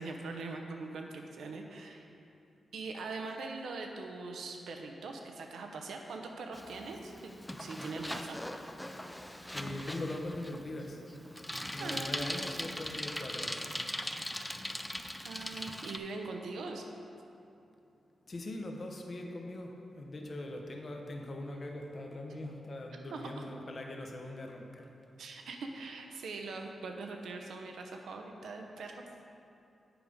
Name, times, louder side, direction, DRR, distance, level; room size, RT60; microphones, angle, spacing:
voice 1, 0.0-2.1 2.7-7.3 7.6-8.4 11.8-12.3 15.2-16.9 23.1-23.5 25.2-29.0, right 3 dB, 90° right, 3 dB, 0.8 m, -42 dB
Bicycle, 6.5-16.0, left 1 dB, 5° left, 0.3 m, -40 dB
voice 2, 9.5-11.0 11.7-13.9 18.3-24.9, left 1 dB, 40° left, 2 dB, 0.8 m, -41 dB
9.1 x 5.0 x 5.2 m, 2.7 s
wide cardioid pair, 140°, 0 cm